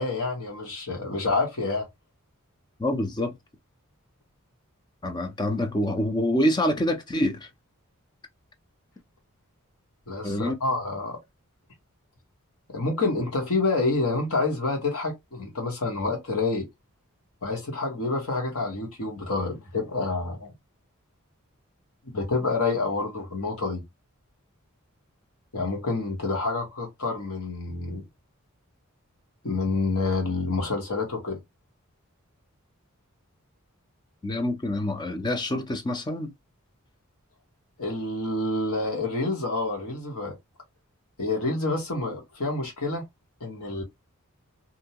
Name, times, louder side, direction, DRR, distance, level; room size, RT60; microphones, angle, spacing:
voice 1, 0.0-1.9 10.1-11.2 12.7-16.7 17.4-20.5 22.1-23.8 25.5-28.0 29.4-31.4 37.8-40.4 41.2-43.0 43.4-43.8, left 3 dB, 90° left, 1.2 m, -28 dB
voice 2, 2.8-3.3 5.0-7.5 10.2-10.5 34.2-36.3, left 1 dB, 20° left, 0.5 m, -26 dB
2.7 x 2.2 x 2.8 m
head